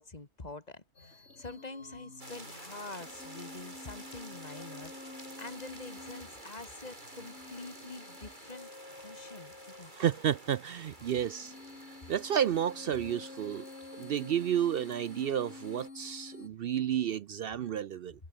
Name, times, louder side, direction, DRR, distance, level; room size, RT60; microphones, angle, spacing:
voice 1, 0.0-10.2 17.7-17.8, left 3 dB, 30° left, 2.1 m, -46 dB
sound 1, 0.9-16.5, left 3 dB, 50° left, 3.3 m, -50 dB
sound 2, 2.2-15.9, right 1 dB, 35° right, 7.0 m, -51 dB
voice 2, 10.0-11.5 12.1-13.6 14.0-18.1, right 9 dB, 65° right, 0.6 m, -31 dB
omnidirectional pair, 1.4 m